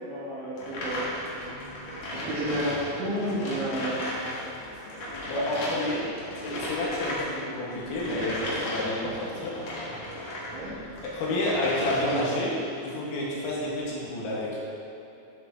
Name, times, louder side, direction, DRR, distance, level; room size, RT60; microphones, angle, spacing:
voice 1, 0.1-1.1 2.1-4.0 10.5-10.8, equal, 60° right, -8 dB, 3.2 m, -31 dB
sound 1, 0.6-10.5 10.9-12.4, left 1 dB, 60° left, 1.9 m, -36 dB
sound 2, 0.7-14.1, equal, 35° right, 2.6 m, -48 dB
Telephone, 0.8-1.4 1.9-2.4 2.9-3.4 3.9-4.5 4.9-5.5 5.9-6.5 7.0-7.5 8.0-8.5 9.0-9.6 10.0-10.6 11.0-11.6 12.1-12.6 13.1-13.6, right 2 dB, 85° right, 4.2 m, -48 dB
voice 2, 5.3-6.1 6.4-9.6 10.6-12.6 12.8-14.6, left 1 dB, 80° left, -6 dB, 4.6 m, -30 dB
11.0 x 10.5 x 3.1 m, 2.9 s
omnidirectional pair, 5.9 m